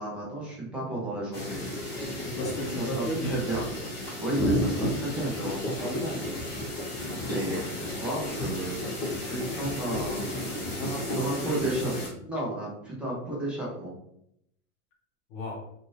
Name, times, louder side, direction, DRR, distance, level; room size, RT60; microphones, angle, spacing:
voice 1, 0.0-1.6 2.7-3.7 4.2-6.2 7.1-10.4 11.2-11.9 12.2-13.9, right 1 dB, 5° right, -6 dB, 0.4 m, -33 dB
sound 1, 1.3-12.1, left 1 dB, 25° left, 1.2 m, -32 dB
voice 2, 2.2-3.4 10.8-11.4 15.3-15.6, right 1 dB, 60° left, -4 dB, 0.9 m, -33 dB
2.6 x 2.5 x 3.2 m, 0.75 s
supercardioid pair, 145°, 44 cm